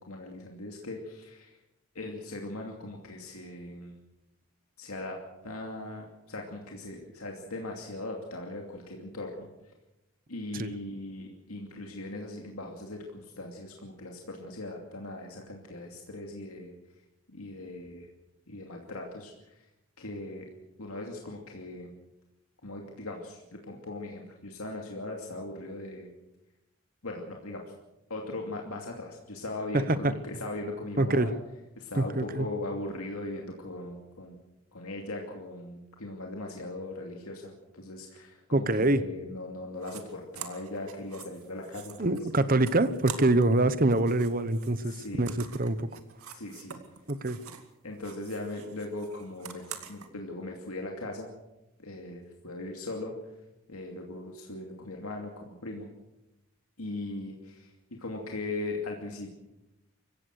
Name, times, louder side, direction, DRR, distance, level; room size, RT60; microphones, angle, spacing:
voice 1, 0.0-1.5 1.9-4.0 4.8-5.2 5.4-9.5 10.3-16.7 17.3-18.1 18.5-19.3 20.0-20.4 20.8-21.9 22.6-26.1 27.0-27.7 28.1-31.4 31.8-34.4 34.7-42.3 44.8-45.3 46.3-46.8 47.8-51.3 51.8-53.1 53.7-55.9 56.8-59.3, left 2 dB, 85° left, 1 dB, 2.7 m, -39 dB
voice 2, 31.0-31.3 31.9-32.5 38.5-39.0 42.0-46.0 47.1-47.4, right 2 dB, 40° right, 14 dB, 1.0 m, -25 dB
sound 1, 39.8-40.0 40.3-43.6 43.8-47.7 48.0-50.1, right 8 dB, 90° right, 2.3 m, -45 dB
25.5 x 15.5 x 6.6 m, 0.93 s
head